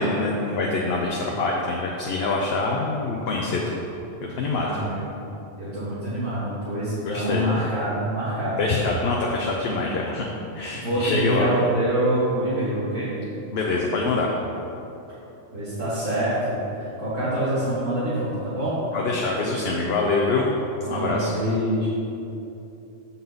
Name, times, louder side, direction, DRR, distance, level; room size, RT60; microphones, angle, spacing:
voice 1, 0.0-3.8 4.4-4.8 7.0-7.5 8.6-10.3 10.5-11.5 13.5-14.3 18.9-20.5 20.9-21.3, left 3 dB, 60° left, -2 dB, 0.8 m, -25 dB
voice 2, 4.5-5.0 5.6-8.7 10.8-13.1 15.5-18.8 20.8-21.9, right 1 dB, 90° right, -12 dB, 2.1 m, -26 dB
7.0 x 5.6 x 3.9 m, 2.8 s
omnidirectional pair, 1.3 m